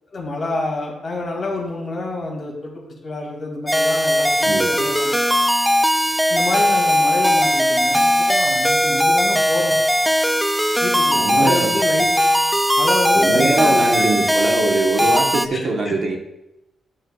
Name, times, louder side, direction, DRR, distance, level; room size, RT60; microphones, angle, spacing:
voice 1, 0.1-5.2 6.3-9.8 10.8-12.1 12.8-14.0 15.5-15.6 15.8-15.9, left 2 dB, 40° left, -1 dB, 2.2 m, -27 dB
sound 1, 3.7-15.5, equal, ahead, 0.3 m, -18 dB
voice 2, 11.1-11.7 13.1-16.2, right 3 dB, 45° right, 1 dB, 1.1 m, -22 dB
11.5 x 6.3 x 2.3 m, 0.89 s
wide cardioid pair, 155°, 0 cm